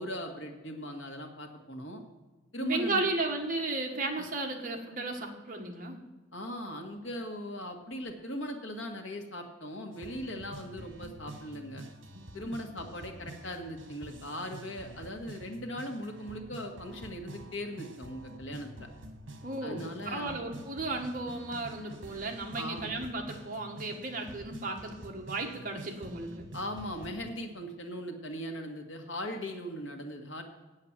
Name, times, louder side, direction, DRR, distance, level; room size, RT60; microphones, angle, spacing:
voice 1, 0.0-2.0 2.5-3.1 4.2-4.3 6.3-11.8 12.3-18.9 19.6-20.4 22.5-23.0 26.5-30.4, equal, 85° left, 3 dB, 1.7 m, -39 dB
voice 2, 2.6-6.0 19.4-26.5, right 2 dB, 45° right, 2 dB, 1.5 m, -34 dB
sound 1, 9.9-27.3, right 1 dB, 75° right, 1.4 m, -48 dB
8.6 x 8.1 x 7.3 m, 1.2 s
head